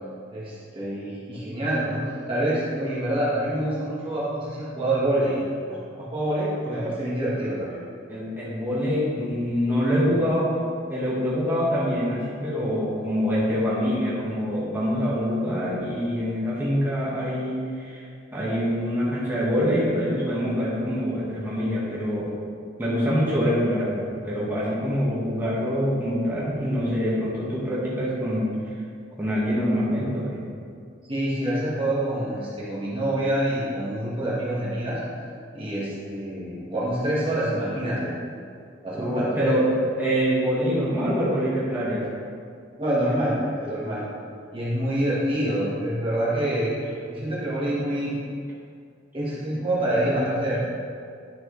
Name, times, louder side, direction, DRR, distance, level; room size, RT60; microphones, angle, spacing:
voice 1, 0.3-5.4 5.7-7.8 31.1-35.0 35.5-38.1 38.8-39.5 42.8-44.0 44.5-46.8 47.1-48.2 49.1-50.6, right 1 dB, 25° right, -8 dB, 1.5 m, -26 dB
voice 2, 8.1-10.5 10.9-18.0 18.3-22.3 22.8-28.5 29.2-30.4 38.9-39.7 40.0-42.0, equal, 10° right, -8 dB, 1.6 m, -25 dB
10.5 x 6.1 x 3.2 m, 2.3 s
head